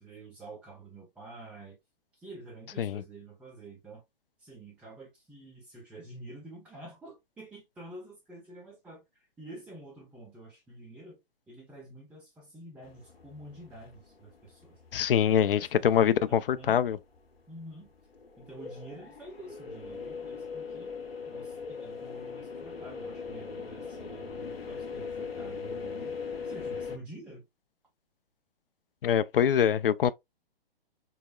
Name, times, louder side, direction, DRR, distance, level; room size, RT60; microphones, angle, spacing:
voice 1, 0.0-1.8 2.1-4.0 4.4-11.2 11.5-14.8 15.2-16.8 17.5-17.9 18.4-20.9 21.3-26.2 26.4-27.5, right 2 dB, 5° right, 0.5 m, -48 dB
sound 1, 12.8-16.0 16.2-17.3 17.7-27.0, left 5 dB, 85° left, 1.0 m, -40 dB
voice 2, 14.9-17.0 29.0-30.1, left 9 dB, 65° left, 0.4 m, -24 dB
4.7 x 2.0 x 2.3 m
figure-of-eight pair, 125°, 30 cm